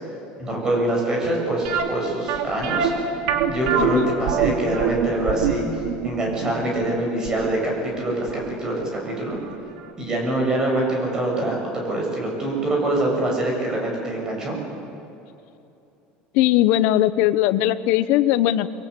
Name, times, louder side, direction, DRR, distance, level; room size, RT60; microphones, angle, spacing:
voice 1, 0.4-2.9 3.5-5.6 6.0-9.4 10.0-14.6, right 1 dB, 20° right, -1 dB, 7.7 m, -24 dB
sound 1, 1.6-8.5 8.8-8.9 9.4-9.6 9.9-10.0, right 7 dB, 70° right, 3.1 m, -24 dB
voice 2, 3.8-4.1 16.3-18.7, left 13 dB, 60° left, 14 dB, 1.1 m, -19 dB
29.5 x 23.0 x 8.6 m, 2.8 s
cardioid pair, 165°, 4 cm